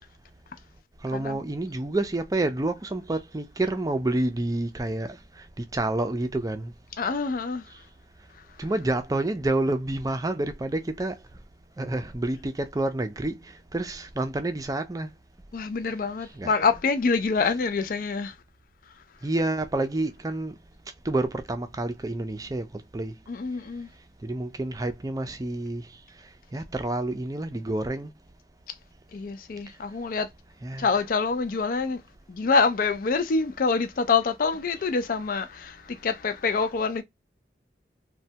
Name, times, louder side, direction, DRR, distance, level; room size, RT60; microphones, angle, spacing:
voice 1, 1.0-5.2 5.7-6.7 8.6-11.1 11.8-13.4 13.7-15.1 16.3-16.5 19.2-20.5 21.0-22.7 22.9-23.1 24.2-25.8 26.5-28.1 30.6-30.9, right 2 dB, 20° right, 0.4 m, -28 dB
voice 2, 7.0-7.6 15.5-18.3 23.3-23.9 29.1-30.3 30.8-32.0 32.3-37.0, left 4 dB, 50° left, 0.4 m, -26 dB
3.1 x 2.2 x 2.8 m
head